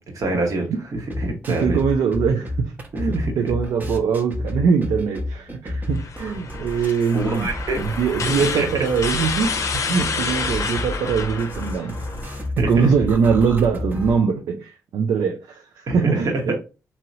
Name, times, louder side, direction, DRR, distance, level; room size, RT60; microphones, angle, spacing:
voice 1, 0.2-0.7 0.9-1.8 2.9-3.3 6.5-6.6 7.1-7.8 8.4-8.7 12.6-12.7 15.9-16.5, right 2 dB, 60° right, 1.2 m, -25 dB
sound 1, 0.9-14.2, left 1 dB, 30° right, 0.9 m, -31 dB
voice 2, 1.5-7.5 7.8-12.0 12.6-16.5, right 6 dB, 75° right, 0.4 m, -22 dB
sound 2, 5.9-12.4, left 5 dB, 50° left, 0.6 m, -29 dB
2.9 x 2.8 x 2.6 m
supercardioid pair, 55°, 6 cm